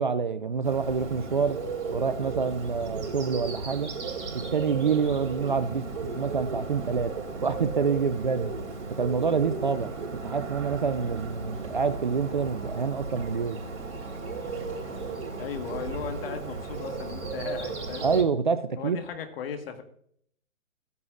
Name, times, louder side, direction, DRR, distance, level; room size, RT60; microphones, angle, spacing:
voice 1, 0.0-1.6 1.9-3.9 4.3-7.1 7.4-8.5 9.0-9.9 10.2-13.6 18.0-19.0, right 5 dB, 40° right, 0.4 m, -27 dB
Bird, 0.6-18.2, right 4 dB, 55° right, 3.7 m, -35 dB
voice 2, 15.4-18.1 18.8-19.8, left 7 dB, 40° left, 1.6 m, -36 dB
15.0 x 9.5 x 2.5 m
hypercardioid pair, 145°, 42 cm